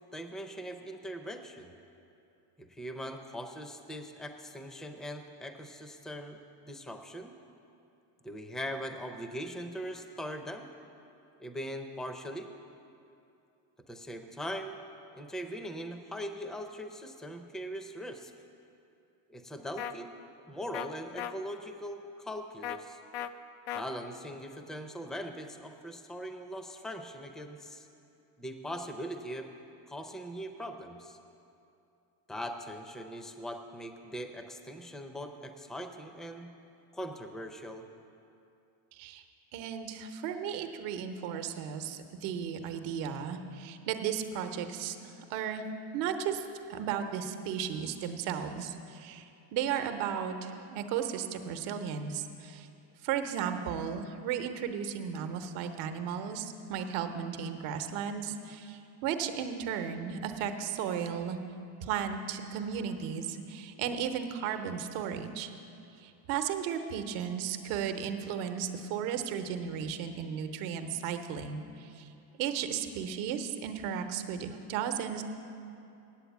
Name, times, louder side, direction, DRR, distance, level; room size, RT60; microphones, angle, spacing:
voice 1, 0.1-1.7 2.6-6.4 6.7-7.3 8.2-10.7 11.4-12.5 13.9-14.8 15.1-18.3 19.3-20.1 20.5-23.0 23.7-27.9 28.4-29.5 29.9-31.2 32.3-36.5 36.9-37.8, equal, ahead, 6 dB, 0.5 m, -41 dB
sound 1, 19.8-19.9 20.7-20.9 21.2-21.3 22.6-22.8 23.1-23.3 23.7-23.8, left 11 dB, 85° left, 0.6 m, -36 dB
voice 2, 38.9-39.2 39.5-45.6 45.9-49.2 49.5-52.7 53.0-61.4 61.8-65.5 66.0-72.1 72.4-75.2, right 8 dB, 70° right, 7 dB, 0.9 m, -35 dB
8.9 x 7.9 x 8.2 m, 2.7 s
supercardioid pair, 110°, 48 cm